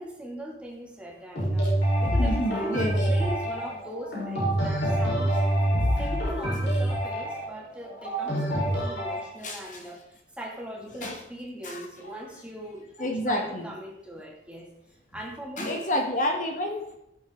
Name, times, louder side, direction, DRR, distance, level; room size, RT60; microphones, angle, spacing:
voice 1, 0.0-1.7 2.0-5.4 6.0-14.7 15.1-15.8, equal, 5° right, -2 dB, 2.4 m, -40 dB
sound 1, 1.4-9.3, right 1 dB, 65° left, 4.4 m, -26 dB
voice 2, 1.9-3.3 5.6-5.8 8.6-8.7 9.4-9.8 11.0-11.2 11.6-11.9 13.0-13.7 15.6-17.0, left 1 dB, 40° left, 3 dB, 1.5 m, -30 dB
17.0 x 7.6 x 3.8 m, 0.82 s
head